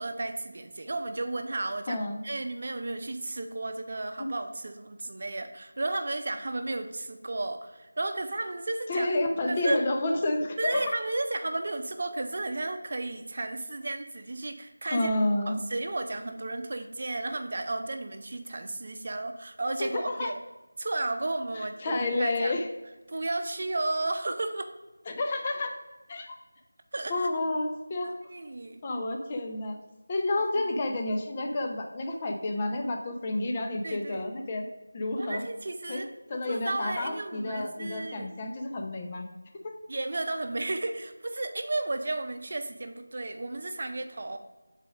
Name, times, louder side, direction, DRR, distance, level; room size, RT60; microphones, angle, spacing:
voice 1, 0.0-9.1 9.5-9.8 10.6-15.1 15.5-20.4 20.8-22.6 23.1-24.7 26.9-27.3 28.0-28.8 33.8-34.3 35.2-36.1 36.3-38.3 39.9-44.4, right 2 dB, 50° right, 7 dB, 0.7 m, -33 dB
voice 2, 1.9-2.2 4.2-4.3 8.9-11.0 14.9-15.6 19.8-20.3 21.5-22.7 25.1-25.7 26.1-26.4 27.1-28.1 28.8-29.8 30.1-34.7 34.9-35.4 35.9-36.0 36.3-39.3 39.6-39.7, left 2 dB, 25° left, 3 dB, 0.7 m, -30 dB
7.6 x 4.1 x 5.0 m, 1.1 s
figure-of-eight pair, 170°, 0 cm